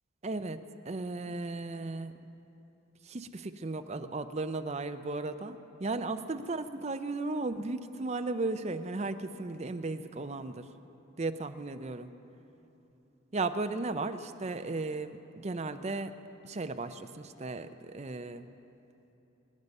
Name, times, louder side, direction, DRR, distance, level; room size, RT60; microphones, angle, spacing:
voice 1, 0.2-0.6 0.9-2.1 3.0-10.7 11.2-12.1 13.3-16.1 16.4-18.5, right 3 dB, 30° right, 9 dB, 0.5 m, -35 dB
23.5 x 9.5 x 5.4 m, 3.0 s
head